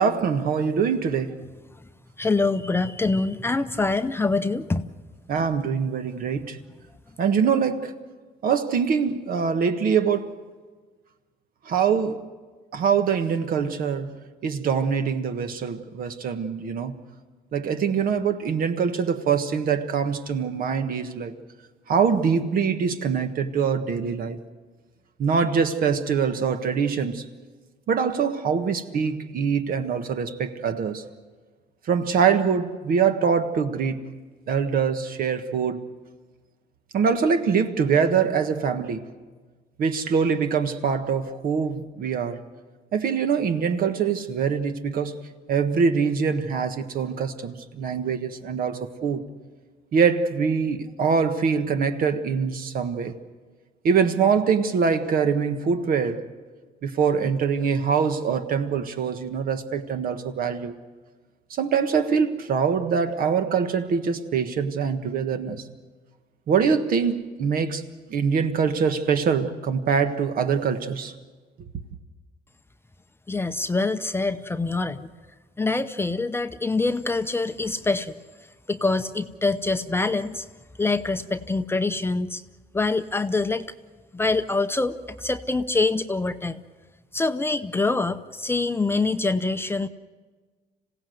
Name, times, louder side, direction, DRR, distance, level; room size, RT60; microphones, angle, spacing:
voice 1, 0.0-1.3 5.3-6.6 7.2-7.9 8.4-10.3 11.6-12.2 12.7-14.1 14.4-16.9 17.5-21.3 21.9-24.4 25.2-27.2 27.9-31.0 31.9-34.1 34.5-35.8 36.9-39.0 39.8-42.4 42.9-45.2 45.5-49.2 49.9-53.1 53.8-56.2 56.8-60.8 61.5-65.6 66.5-67.8 68.1-71.1, right 6 dB, 60° right, 1.5 m, -24 dB
voice 2, 2.2-4.8 73.3-75.1 75.6-78.2 78.7-80.4 80.8-82.4 82.7-83.6 84.1-86.6 87.1-89.9, left 3 dB, 15° left, 0.7 m, -25 dB
26.5 x 16.5 x 7.9 m
cardioid pair, 110°, 17 cm